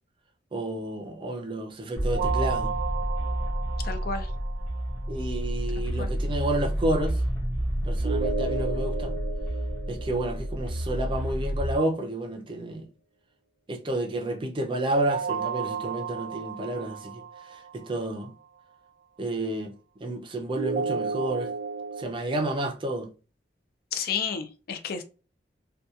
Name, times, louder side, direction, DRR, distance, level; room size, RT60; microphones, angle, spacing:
voice 1, 0.5-2.7 5.1-7.2 7.8-9.2 9.9-12.9 13.7-18.3 19.2-21.5 22.0-23.1, right 1 dB, 30° right, 0.4 m, -30 dB
sound 1, 2.0-11.8, equal, 25° left, 1.0 m, -29 dB
sound 2, 2.1-5.1 8.0-11.1 14.8-18.0 20.6-22.0, right 5 dB, 85° right, 0.6 m, -33 dB
voice 2, 3.8-4.3 5.8-6.1 23.9-25.0, left 6 dB, 55° left, 0.4 m, -32 dB
2.7 x 2.2 x 2.3 m
head